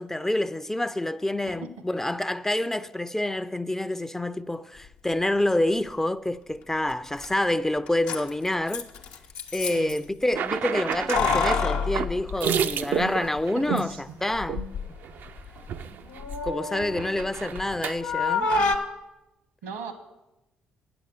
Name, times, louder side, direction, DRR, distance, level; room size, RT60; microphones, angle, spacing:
voice 1, 0.0-8.9 9.5-14.6 16.4-18.5, left 1 dB, 10° left, 0.4 m, -27 dB
Keys jangling, 6.9-7.0 7.2-7.3 7.9-10.0 10.9-13.1 13.4-13.5 14.3-14.9 15.3-17.7 18.0-18.8, left 4 dB, 75° left, 0.9 m, -28 dB
voice 2, 9.6-10.0 13.5-14.0 19.6-19.9, right 5 dB, 80° right, 1.3 m, -37 dB
sound 1, 10.4-13.9 14.5-14.7 15.0-15.3 15.6-16.4 16.7-18.0, right 7 dB, 60° right, 0.4 m, -30 dB
8.6 x 6.9 x 7.7 m
hypercardioid pair, 45°, 4 cm